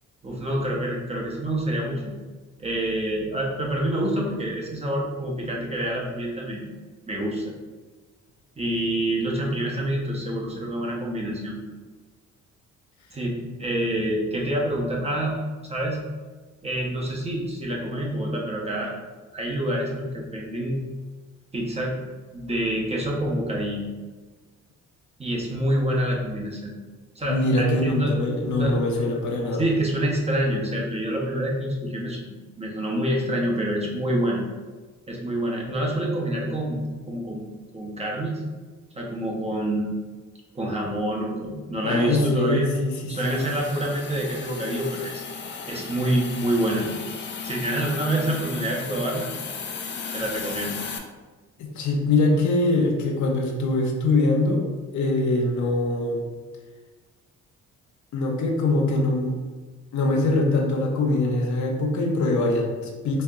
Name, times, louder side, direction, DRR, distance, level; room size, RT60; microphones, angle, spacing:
voice 1, 0.2-2.1 2.6-6.7 7.1-7.5 8.6-11.6 13.1-15.4 15.7-16.0 16.6-18.9 19.3-20.8 21.5-22.0 22.3-23.9 25.2-26.7 27.2-28.1 28.4-28.8 29.6-34.4 35.1-38.4 38.9-40.0 40.5-42.7 43.1-45.2 45.7-46.9 47.4-49.3 50.1-50.8, right 1 dB, 20° right, -3 dB, 0.8 m, -27 dB
voice 2, 27.3-29.6 41.8-43.5 51.6-54.7 54.9-56.2 58.1-59.3 59.9-63.2, left 2 dB, 70° left, 1 dB, 0.7 m, -23 dB
Hiss, 43.1-51.0, left 5 dB, 40° left, 0.5 m, -35 dB
4.2 x 2.7 x 2.4 m, 1.3 s
cardioid pair, 90°, 30 cm